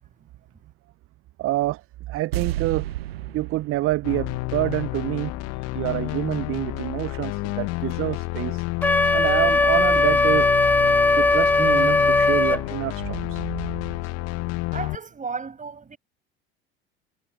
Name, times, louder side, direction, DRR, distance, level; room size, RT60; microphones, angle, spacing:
voice 1, 1.4-1.8 2.1-2.9 3.3-5.3 5.7-8.6 9.1-10.5 11.2-13.4, right 17 dB, 45° right, 0.8 m, -27 dB
sound 1, 2.3-5.5 5.8-5.9, right 14 dB, 80° right, 0.7 m, -33 dB
sound 2, 4.0-14.9, left 23 dB, 55° left, 1.0 m, -30 dB
Wind instrument woodwind instrument, 8.8-12.6, left 3 dB, 5° left, 0.3 m, -19 dB
voice 2, 14.7-16.0, right 5 dB, 25° right, 7.3 m, -34 dB
figure-of-eight pair, 65°, 30 cm